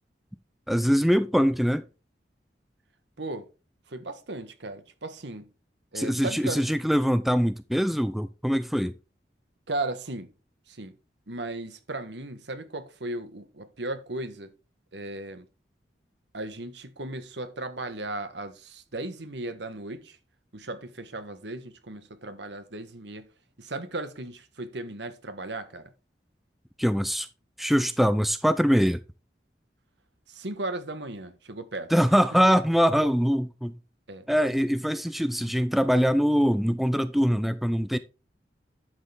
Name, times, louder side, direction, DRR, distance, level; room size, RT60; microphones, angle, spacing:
voice 1, 0.7-1.9 5.9-8.9 26.8-27.3 27.6-29.0 31.9-33.8 34.3-38.0, equal, ahead, 0.4 m, -23 dB
voice 2, 3.9-5.5 5.9-6.7 9.7-10.3 10.7-10.9 11.3-14.5 14.9-15.5 16.3-20.2 20.5-23.3 23.6-25.9 30.3-31.9 32.3-32.4 34.1-34.3, right 2 dB, 80° right, 1.4 m, -36 dB
11.0 x 6.5 x 3.5 m
head